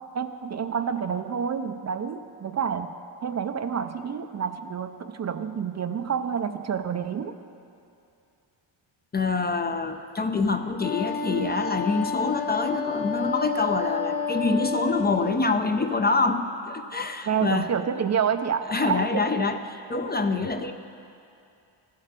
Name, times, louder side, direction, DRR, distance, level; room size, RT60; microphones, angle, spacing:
voice 1, 0.1-7.4 17.3-19.4, right 7 dB, 35° right, 9 dB, 0.5 m, -28 dB
voice 2, 9.1-17.7 18.7-20.7, left 3 dB, 20° left, 7 dB, 0.5 m, -26 dB
Wind instrument woodwind instrument, 10.8-15.5, left 5 dB, 85° left, 3.0 m, -30 dB
14.0 x 7.5 x 7.6 m, 2.6 s
cardioid pair, 105°, 46 cm